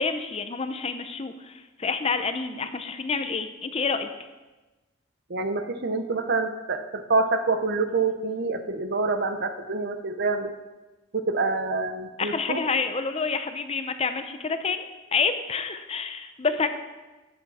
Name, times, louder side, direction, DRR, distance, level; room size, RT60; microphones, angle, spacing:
voice 1, 0.0-4.1 12.2-14.9 15.1-16.7, left 4 dB, 30° left, 9 dB, 0.6 m, -28 dB
voice 2, 5.3-6.8 7.1-10.5 11.1-12.6, right 3 dB, 55° right, 8 dB, 0.9 m, -26 dB
13.5 x 8.7 x 4.2 m, 1.2 s
head